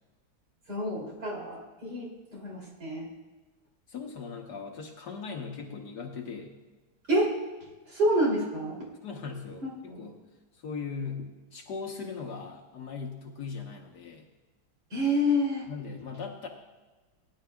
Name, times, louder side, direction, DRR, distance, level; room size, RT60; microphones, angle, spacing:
voice 1, 0.7-3.1 7.1-7.3 7.9-8.9 9.6-10.0 14.9-15.7, equal, 55° right, -3 dB, 3.5 m, -28 dB
voice 2, 3.9-6.5 9.0-10.2 10.6-14.2 15.7-16.5, left 5 dB, 60° left, 2 dB, 1.5 m, -39 dB
20.0 x 10.5 x 2.3 m, 1.3 s
omnidirectional pair, 2.2 m